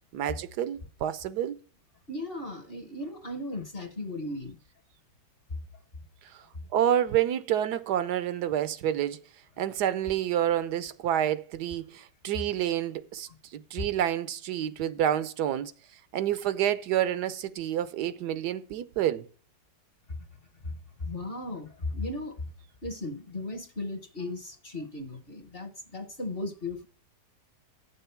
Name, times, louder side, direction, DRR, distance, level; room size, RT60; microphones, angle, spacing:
voice 1, 0.1-1.6 6.3-6.4 6.7-9.2 9.6-15.7 16.1-19.3, right 11 dB, 75° right, 1.2 m, -28 dB
voice 2, 2.1-4.6 13.8-13.9 20.1-20.2 20.6-22.5 22.8-26.8, left 2 dB, 40° left, 1.1 m, -36 dB
9.9 x 6.9 x 5.6 m
omnidirectional pair, 1.9 m